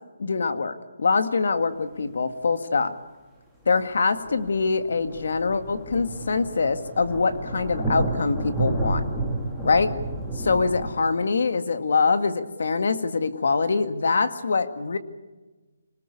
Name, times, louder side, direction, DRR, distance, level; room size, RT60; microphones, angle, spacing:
voice 1, 0.2-2.9 3.7-9.0 9.6-9.9 10.4-15.0, left 4 dB, 55° left, 10 dB, 1.9 m, -24 dB
sound 1, 3.8-3.9 4.3-10.9, right 2 dB, 5° left, 2.1 m, -30 dB
27.0 x 19.5 x 8.5 m, 1.2 s
hypercardioid pair, 175°, 0 cm